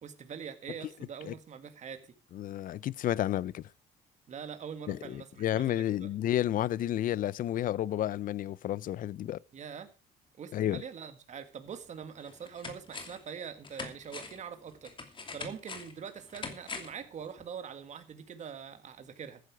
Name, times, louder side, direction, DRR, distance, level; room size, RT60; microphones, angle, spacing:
voice 1, 0.0-2.0 4.3-6.1 9.5-9.9 10.4-14.9 15.3-19.4, right 7 dB, 45° right, 1.8 m, -43 dB
voice 2, 2.3-3.6 4.9-9.4 10.5-10.8, left 12 dB, 55° left, 0.6 m, -31 dB
sound 1, 11.7-11.8 12.2-13.3 13.6-17.1 17.4-17.5, left 4 dB, 30° left, 2.7 m, -43 dB
14.5 x 10.0 x 4.7 m
cardioid pair, 110°, 17 cm